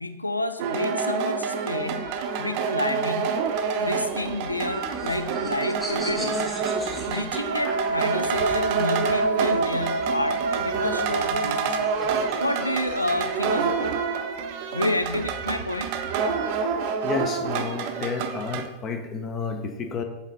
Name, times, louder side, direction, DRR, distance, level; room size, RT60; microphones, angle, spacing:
voice 1, 0.0-3.5 3.8-6.5 7.1-11.9 12.4-14.0 14.7-15.9, left 2 dB, 85° left, 10 dB, 0.4 m, -30 dB
sound 1, 0.6-18.7, right 6 dB, 45° right, 0.6 m, -28 dB
sound 2, 4.4-8.4 9.7-13.9, left 1 dB, 10° left, 1.3 m, -38 dB
Wind instrument woodwind instrument, 7.5-14.8, right 2 dB, 85° right, 0.7 m, -29 dB
voice 2, 17.0-20.0, left 5 dB, 30° left, 6 dB, 0.8 m, -31 dB
7.3 x 4.1 x 3.8 m, 1.0 s
figure-of-eight pair, 90°, 0 cm